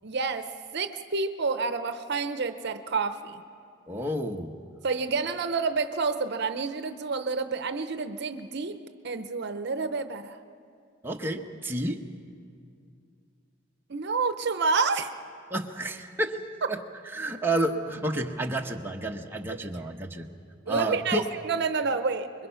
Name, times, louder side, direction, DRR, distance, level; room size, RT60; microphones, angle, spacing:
voice 1, 0.0-3.4 4.8-8.8 9.0-10.4 13.9-15.1 20.7-22.5, right 4 dB, 60° right, 9 dB, 0.7 m, -29 dB
voice 2, 3.9-4.6 11.0-12.1 15.5-16.4 16.7-16.8 17.1-20.3 20.7-21.3, right 1 dB, 10° right, 1 dB, 1.1 m, -30 dB
26.0 x 22.0 x 5.7 m, 2.3 s
head